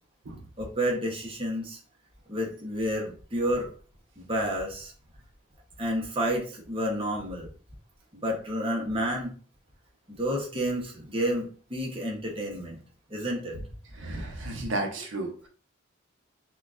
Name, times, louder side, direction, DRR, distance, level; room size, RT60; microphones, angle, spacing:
voice 1, 0.6-1.8 2.3-3.7 4.2-4.9 5.8-7.5 8.1-9.3 10.2-12.8 13.1-13.6, equal, 25° right, -1 dB, 0.8 m, -30 dB
voice 2, 13.9-15.5, right 2 dB, 70° right, 3 dB, 0.7 m, -33 dB
6.1 x 2.3 x 2.4 m, 0.42 s
head